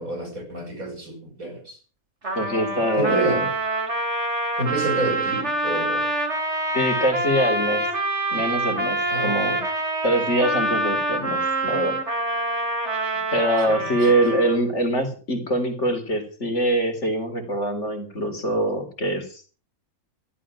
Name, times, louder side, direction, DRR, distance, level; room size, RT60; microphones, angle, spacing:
voice 1, 0.0-1.8 2.9-3.4 4.6-6.1 9.1-9.5 13.6-13.8, right 2 dB, 70° right, 3 dB, 6.4 m, -29 dB
Trumpet, 2.2-14.7, right 2 dB, 50° right, 3.7 m, -26 dB
voice 2, 2.3-3.5 6.7-7.8 8.3-9.6 10.0-12.0 13.3-19.5, right 1 dB, 50° left, 5 dB, 4.0 m, -24 dB
14.5 x 13.0 x 6.2 m, 0.39 s
omnidirectional pair, 1.5 m